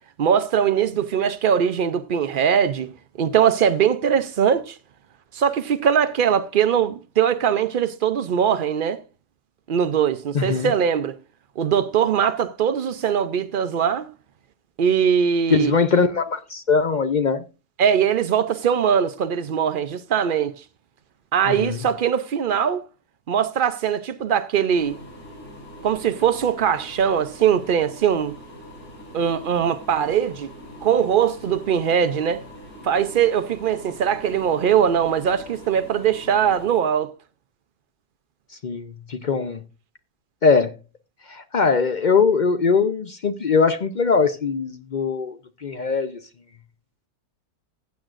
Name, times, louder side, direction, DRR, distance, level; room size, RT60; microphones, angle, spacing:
voice 1, 0.2-2.9 3.2-4.8 5.3-9.0 9.7-11.1 11.6-14.1 14.8-15.7 17.8-20.6 21.3-22.8 23.3-25.0 25.8-28.3 29.1-30.5 30.8-32.4 32.8-37.1, right 8 dB, 85° right, 0.4 m, -21 dB
voice 2, 10.3-10.7 15.5-17.4 21.5-21.8 38.6-39.6 40.4-40.7 41.3-46.2, left 5 dB, 60° left, 0.5 m, -21 dB
sound 1, 24.7-36.7, equal, 90° left, 6.1 m, -42 dB
15.0 x 8.3 x 2.5 m
omnidirectional pair, 1.7 m